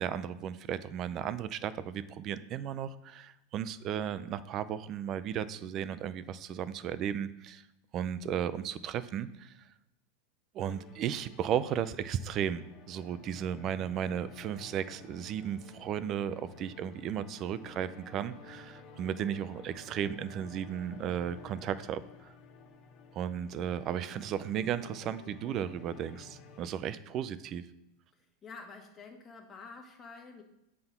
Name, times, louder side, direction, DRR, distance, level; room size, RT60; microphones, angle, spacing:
voice 1, 0.0-7.6 7.9-9.5 10.5-22.3 23.1-27.7, right 9 dB, 40° right, 14 dB, 0.5 m, -35 dB
sound 1, 10.6-26.7, left 4 dB, 45° left, 1.6 m, -52 dB
voice 2, 28.4-30.4, left 4 dB, 25° left, 2 dB, 1.6 m, -48 dB
7.8 x 3.7 x 5.7 m, 0.86 s
hypercardioid pair, 120°, 0 cm